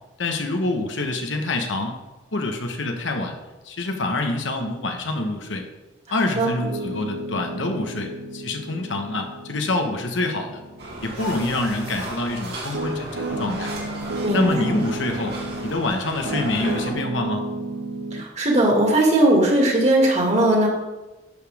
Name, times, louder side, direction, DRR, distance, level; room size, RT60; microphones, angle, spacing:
voice 1, 0.2-2.0 2.3-3.4 3.6-5.6 6.1-10.6 11.0-13.7 14.3-17.5, left 2 dB, 80° left, 4 dB, 1.3 m, -26 dB
Piano, 6.5-15.8 16.2-18.2, right 2 dB, 80° right, 0.9 m, -33 dB
sound 1, 10.8-16.9, right 1 dB, 55° right, 2.4 m, -35 dB
voice 2, 14.2-14.6 18.1-20.7, right 1 dB, 35° right, -1 dB, 2.2 m, -18 dB
11.0 x 7.3 x 3.6 m, 1.1 s
head